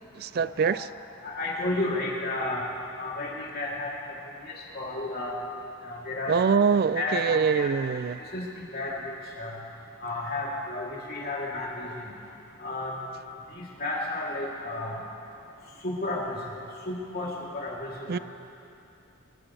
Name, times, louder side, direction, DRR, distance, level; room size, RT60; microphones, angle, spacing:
voice 1, 0.1-0.9 6.3-8.2 18.1-18.2, right 6 dB, 45° right, 0.3 m, -24 dB
voice 2, 1.2-2.6 3.0-3.9 4.4-5.4 5.8-6.4 6.9-7.7 8.3-9.1 9.4-9.5 10.0-11.9 12.6-12.9 13.8-15.0 15.8-16.4 16.9-18.2, left 2 dB, 45° left, 3.0 m, -32 dB
24.0 x 15.5 x 3.3 m
head